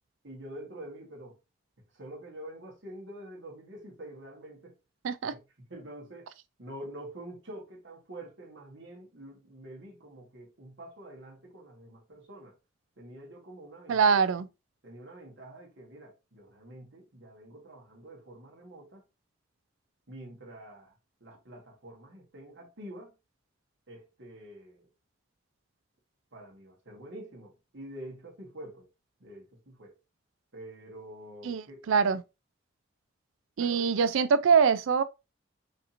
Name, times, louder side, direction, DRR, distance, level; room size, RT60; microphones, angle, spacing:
voice 1, 0.2-1.4 1.9-4.7 5.3-6.3 6.6-12.6 13.0-14.2 14.8-19.0 20.1-20.9 21.2-23.1 23.9-24.9 26.3-28.9 29.2-30.0 30.5-31.8 33.6-33.9, right 1 dB, 65° right, 1.6 m, -46 dB
voice 2, 13.9-14.5 31.5-32.2 33.6-35.0, right 6 dB, 85° right, 0.4 m, -24 dB
5.1 x 2.9 x 2.5 m
head